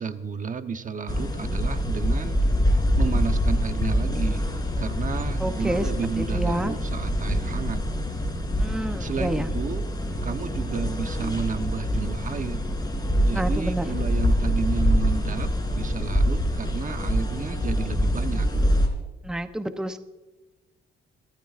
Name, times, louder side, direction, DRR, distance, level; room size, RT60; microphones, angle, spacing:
voice 1, 0.0-2.4 3.0-4.5 4.8-7.8 9.0-9.8 10.2-12.7 13.2-18.5, right 5 dB, 40° right, 8 dB, 1.1 m, -32 dB
sound 1, 1.1-18.9, equal, 20° left, 3.9 m, -25 dB
voice 2, 5.4-5.9 6.2-6.7 8.6-9.5 13.3-14.0 19.2-20.0, right 1 dB, 5° right, 8 dB, 0.9 m, -29 dB
24.5 x 13.5 x 2.6 m, 1.2 s
cardioid pair, 90°, 20 cm